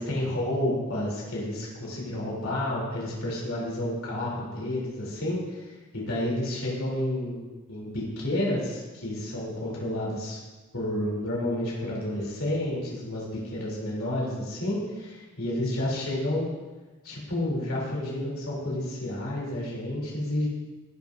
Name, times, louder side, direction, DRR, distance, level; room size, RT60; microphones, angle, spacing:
voice 1, 0.0-5.6 5.9-7.4 7.7-10.4 10.7-16.5 17.0-20.5, left 1 dB, 85° left, -5 dB, 3.1 m, -30 dB
17.0 x 6.1 x 2.6 m, 1.2 s
head